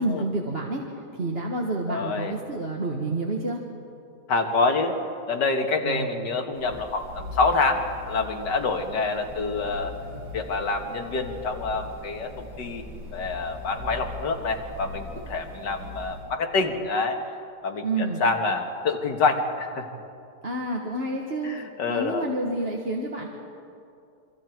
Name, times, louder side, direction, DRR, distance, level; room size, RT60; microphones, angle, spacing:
voice 1, 0.0-3.6 5.8-6.2 17.8-18.2 20.4-21.6 21.9-23.3, right 2 dB, 35° right, -1 dB, 1.8 m, -29 dB
voice 2, 1.9-2.3 4.3-5.0 5.3-9.9 10.3-12.8 13.1-17.2 17.6-19.9 21.4-22.3, left 3 dB, 85° left, 4 dB, 2.3 m, -26 dB
sound 1, 6.5-16.3, left 1 dB, 75° right, 3.2 m, -40 dB
27.5 x 25.0 x 4.6 m, 2.6 s
omnidirectional pair, 1.8 m